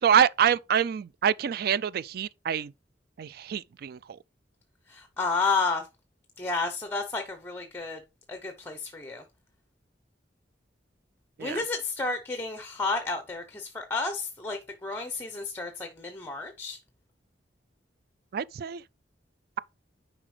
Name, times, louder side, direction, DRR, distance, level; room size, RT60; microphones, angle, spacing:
voice 1, 0.0-2.7 3.2-4.2 11.4-11.6 18.3-18.8, right 8 dB, 55° right, 0.3 m, -26 dB
voice 2, 4.9-5.9 6.4-8.0 8.3-9.2 11.4-16.8, left 3 dB, 15° left, 0.8 m, -31 dB
9.8 x 5.0 x 3.2 m
head